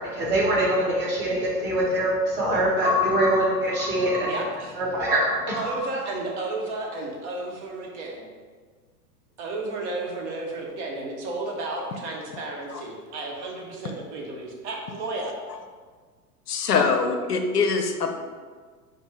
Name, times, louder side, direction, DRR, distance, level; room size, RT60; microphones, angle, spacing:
voice 1, 0.1-4.3 4.8-5.8, equal, 25° right, -5 dB, 1.1 m, -23 dB
voice 2, 4.3-4.7 5.6-8.3 9.4-15.3, right 2 dB, 45° right, -1 dB, 0.8 m, -32 dB
voice 3, 16.5-18.1, left 5 dB, 80° left, 5 dB, 0.5 m, -23 dB
5.1 x 2.1 x 3.1 m, 1.5 s
figure-of-eight pair, 95°, 47 cm